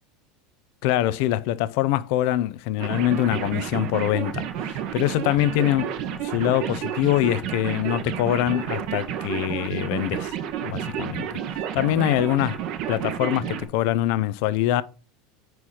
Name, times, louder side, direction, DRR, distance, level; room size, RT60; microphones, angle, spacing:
voice 1, 0.8-6.0 6.2-10.3 10.6-12.6 12.9-14.8, left 13 dB, 65° left, 0.5 m, -24 dB
sound 1, 2.8-13.7, right 9 dB, 55° right, 0.9 m, -31 dB
4.8 x 4.6 x 5.5 m
supercardioid pair, 125°, 0 cm